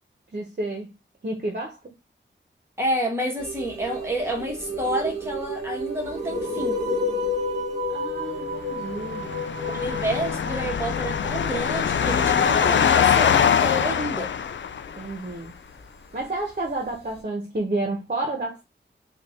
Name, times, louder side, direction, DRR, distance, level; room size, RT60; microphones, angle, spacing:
voice 1, 0.3-0.9 1.2-1.8 7.9-9.4 15.0-15.5 16.1-18.6, right 2 dB, 45° right, 1.2 m, -30 dB
voice 2, 2.8-6.8 9.7-14.3, equal, 10° right, 1.7 m, -29 dB
sound 1, 3.4-17.2, left 1 dB, 30° right, 1.4 m, -32 dB
sound 2, 8.8-15.1, left 8 dB, 65° left, 0.4 m, -23 dB
3.7 x 2.7 x 3.9 m
wide cardioid pair, 80°, 20 cm